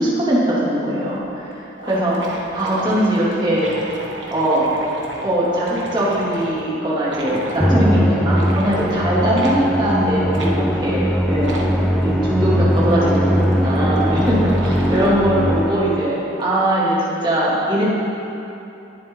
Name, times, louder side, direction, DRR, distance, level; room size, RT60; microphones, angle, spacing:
voice 1, 0.0-1.5 1.8-2.2 2.5-3.7 4.3-4.7 5.2-11.6 12.0-17.8, right 1 dB, 20° right, -8 dB, 2.6 m, -20 dB
sound 1, 1.1-1.2 1.5-1.6 1.8-6.6 7.1-7.6 8.3-8.8 9.3-9.6 10.3-10.5 11.4-11.7 12.5-15.3, right 1 dB, 70° right, 1.4 m, -34 dB
Musical instrument, 7.6-16.1, equal, ahead, 0.6 m, -20 dB
19.5 x 7.8 x 3.8 m, 2.9 s
head